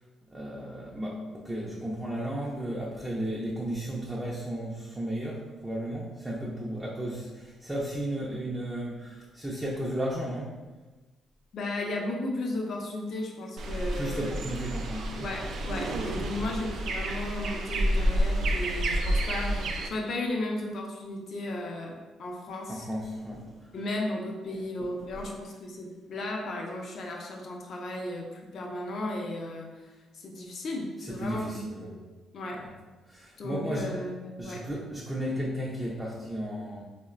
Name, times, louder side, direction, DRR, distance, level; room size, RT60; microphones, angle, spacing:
voice 1, 0.3-10.6 14.0-15.3 22.7-23.7 24.8-25.3 31.0-31.9 32.5-32.7 33.1-34.0 34.4-36.8, right 1 dB, 10° right, -5 dB, 0.5 m, -34 dB
voice 2, 11.5-14.3 15.2-22.9 23.7-32.1 32.3-32.7 33.4-34.7, left 2 dB, 60° left, 0 dB, 0.5 m, -35 dB
sound 1, 13.6-19.9, right 1 dB, 70° right, 0.3 m, -29 dB
3.7 x 2.1 x 2.4 m, 1.2 s
cardioid pair, 90°, 0 cm